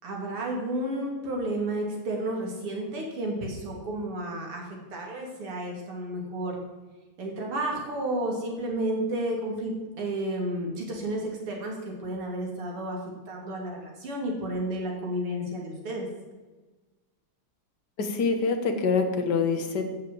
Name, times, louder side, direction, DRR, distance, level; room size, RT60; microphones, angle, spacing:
voice 1, 0.0-6.6 7.2-13.0 13.3-16.1, right 1 dB, 85° right, 0 dB, 3.8 m, -32 dB
voice 2, 18.0-19.8, left 4 dB, 50° left, 5 dB, 2.0 m, -25 dB
14.0 x 6.7 x 7.8 m, 1.2 s
omnidirectional pair, 2.4 m